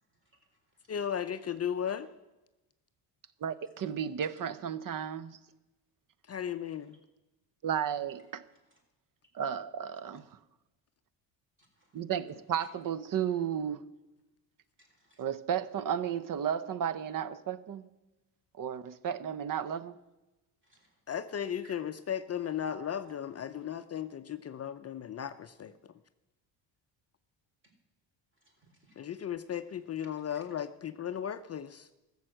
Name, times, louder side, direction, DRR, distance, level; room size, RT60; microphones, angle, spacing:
voice 1, 0.1-0.9 6.7-6.8 8.5-8.8 11.7-12.0 12.6-12.7 14.8-15.2 20.6-21.0 21.6-21.8 27.6-27.7 28.4-29.2 30.1-30.4, right 1 dB, 25° right, 4.3 m, -64 dB
voice 2, 0.9-2.1 6.3-7.0 21.1-25.9 29.0-31.9, left 9 dB, 35° left, 0.5 m, -36 dB
voice 3, 3.4-5.4 7.6-8.4 9.3-10.4 11.9-13.8 15.2-17.8 18.5-20.0, right 8 dB, 45° right, 0.8 m, -33 dB
14.0 x 7.1 x 7.7 m
cardioid pair, 110°, 46 cm